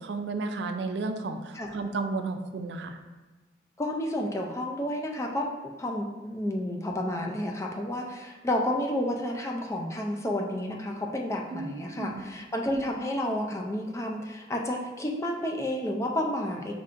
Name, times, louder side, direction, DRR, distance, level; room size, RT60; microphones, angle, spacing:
voice 1, 0.0-3.0 11.5-12.2, right 3 dB, 65° right, 7 dB, 0.3 m, -33 dB
voice 2, 3.8-16.7, left 1 dB, 15° left, 1 dB, 0.4 m, -31 dB
5.2 x 3.3 x 2.5 m, 1.2 s
head